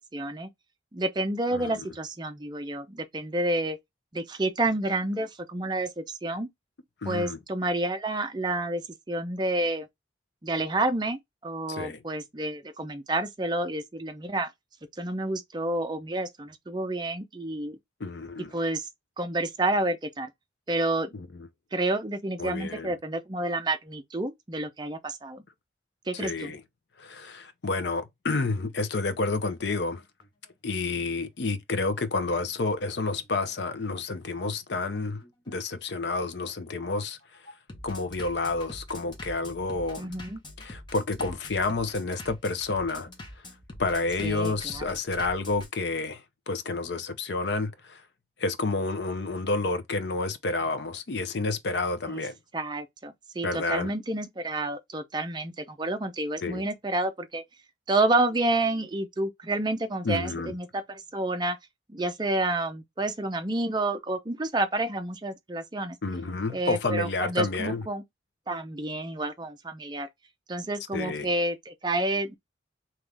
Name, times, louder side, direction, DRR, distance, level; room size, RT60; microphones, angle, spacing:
voice 1, 0.1-0.5 0.9-3.8 4.1-6.5 7.1-9.9 10.4-14.5 15.0-17.8 18.5-18.9 19.2-20.3 20.7-21.1 21.7-25.4 26.1-26.5 40.0-40.4 44.2-44.8 52.1-52.2 52.5-57.4 57.9-61.6 61.9-66.0 66.5-68.0 68.5-70.1 70.5-72.3, right 2 dB, 25° right, 0.5 m, -29 dB
voice 2, 1.5-1.8 7.0-7.4 11.7-12.0 18.0-18.5 21.1-21.5 22.4-22.9 26.1-26.6 27.0-30.0 30.6-37.2 37.8-40.1 40.6-43.1 43.8-48.0 48.4-52.3 53.4-53.9 56.4-56.6 60.0-60.5 66.0-67.8 70.9-71.3, left 3 dB, 65° left, 0.6 m, -30 dB
Bass drum, 29.7-45.7, left 1 dB, 25° left, 0.9 m, -45 dB
3.7 x 3.0 x 3.3 m
head